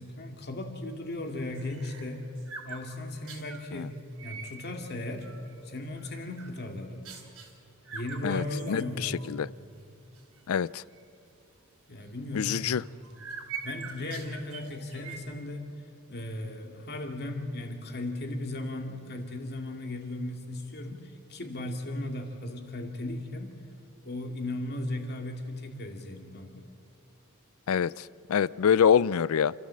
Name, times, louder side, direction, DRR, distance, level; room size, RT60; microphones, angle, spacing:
voice 1, 0.0-2.3 2.6-3.9 4.2-5.3 5.6-7.1 7.9-9.4 11.9-12.7 13.6-15.7 16.1-23.5 24.0-26.6, left 1 dB, 50° left, 3 dB, 2.3 m, -36 dB
sound 1, 1.2-3.6 4.1-4.5 5.0-5.6 6.0-6.6 7.0-7.5 7.8-9.3 9.6-9.7 10.1-10.4 10.9-11.0 12.4-15.2, right 5 dB, 75° right, 3.3 m, -44 dB
voice 2, 8.2-9.5 10.5-10.8 12.3-12.8 27.7-29.5, left 7 dB, 70° left, 21 dB, 0.4 m, -26 dB
29.0 x 13.5 x 7.6 m, 2.6 s
head